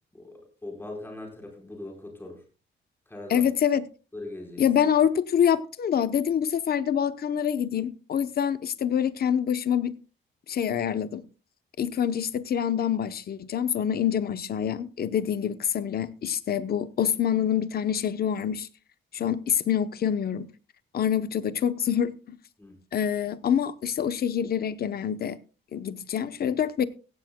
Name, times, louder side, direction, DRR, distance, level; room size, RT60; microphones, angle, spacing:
voice 1, 0.1-2.4 3.1-3.5 4.1-4.6 22.6-22.8, left 2 dB, 10° left, 4.4 m, -40 dB
voice 2, 3.3-3.8 4.6-10.0 10.5-11.2 11.8-18.7 19.1-20.5 20.9-22.4 22.9-25.4 25.7-26.9, left 9 dB, 50° left, 0.8 m, -26 dB
16.5 x 15.5 x 2.2 m
wide cardioid pair, 160°, 20 cm